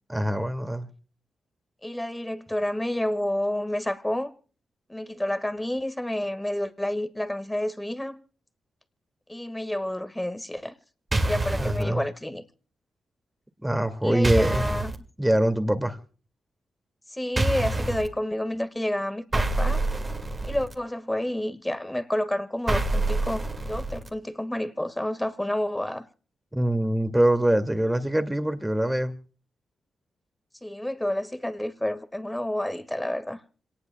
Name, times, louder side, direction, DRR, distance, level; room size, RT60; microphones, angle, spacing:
voice 1, 0.1-0.9 11.6-12.0 13.6-14.6 15.2-16.0 26.5-29.1, right 1 dB, 10° right, 2.2 m, -24 dB
voice 2, 1.8-4.3 4.9-8.2 9.3-10.7 11.2-12.4 14.0-14.9 17.1-19.8 20.4-26.1 30.6-33.4, left 1 dB, 10° left, 1.7 m, -29 dB
sound 1, 11.1-11.8 14.2-15.0 17.4-18.1 19.3-20.7 22.7-24.1, right 2 dB, 30° right, 2.1 m, -26 dB
26.5 x 18.5 x 2.3 m
supercardioid pair, 50°, 0 cm